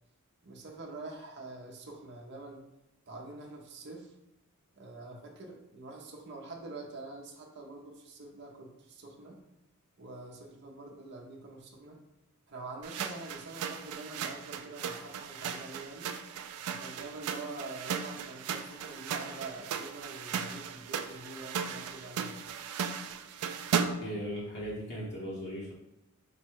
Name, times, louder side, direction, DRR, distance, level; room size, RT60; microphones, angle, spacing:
voice 1, 0.4-2.6 3.1-4.1 4.8-9.4 10.0-12.0 12.5-16.1 16.7-22.4, right 2 dB, 50° right, 0 dB, 0.7 m, -45 dB
sound 1, 12.8-24.2, right 7 dB, 80° right, 0.4 m, -36 dB
voice 2, 24.0-25.7, equal, 50° left, -6 dB, 1.0 m, -38 dB
5.1 x 2.2 x 4.5 m, 0.88 s
head